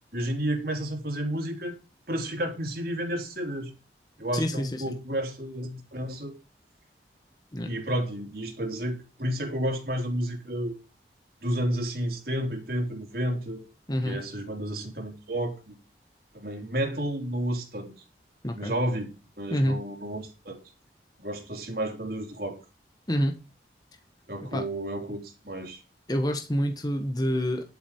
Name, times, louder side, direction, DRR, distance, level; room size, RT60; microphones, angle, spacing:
voice 1, 0.1-1.8 2.1-3.7 4.2-6.4 7.6-10.7 11.4-13.7 14.0-15.8 16.3-17.9 18.5-19.1 19.4-20.6 21.2-22.6 24.3-25.8, right 1 dB, 55° right, 3.5 m, -31 dB
voice 2, 4.3-4.9 7.5-7.7 13.9-14.2 18.4-18.7 19.5-19.8 23.1-23.4 24.5-24.7 26.1-27.6, equal, 20° left, 1.3 m, -27 dB
11.0 x 8.3 x 4.5 m
head